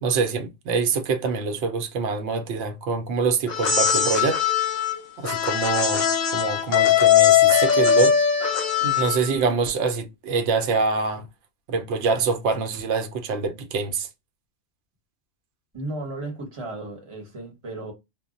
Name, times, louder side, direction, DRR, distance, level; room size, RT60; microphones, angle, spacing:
voice 1, 0.0-4.4 5.2-6.1 6.3-8.1 8.8-11.3 11.7-14.1, right 4 dB, 75° right, 0.8 m, -25 dB
sound 1, 3.5-9.4, left 8 dB, 50° left, 0.7 m, -20 dB
voice 2, 15.7-17.9, right 2 dB, 30° right, 0.8 m, -34 dB
2.1 x 2.0 x 3.7 m
omnidirectional pair, 1.2 m